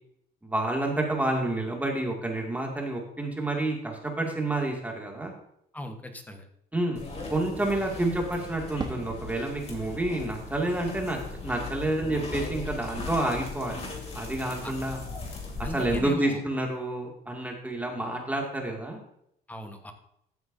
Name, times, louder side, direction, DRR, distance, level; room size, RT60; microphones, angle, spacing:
voice 1, 0.4-5.3 6.7-7.0 7.3-13.8 14.1-15.0 15.7-19.0, right 1 dB, 10° right, 0 dB, 2.3 m, -29 dB
voice 2, 5.7-6.5 14.6-14.7 15.6-16.4 19.5-19.9, left 1 dB, 10° left, 5 dB, 1.2 m, -38 dB
sound 1, 7.0-16.0, left 3 dB, 40° left, 2.7 m, -38 dB
Fireworks, 8.8-13.1 13.4-14.2, right 3 dB, 25° right, 1.1 m, -44 dB
14.0 x 7.9 x 2.7 m, 0.75 s
cardioid pair, 110°, 17 cm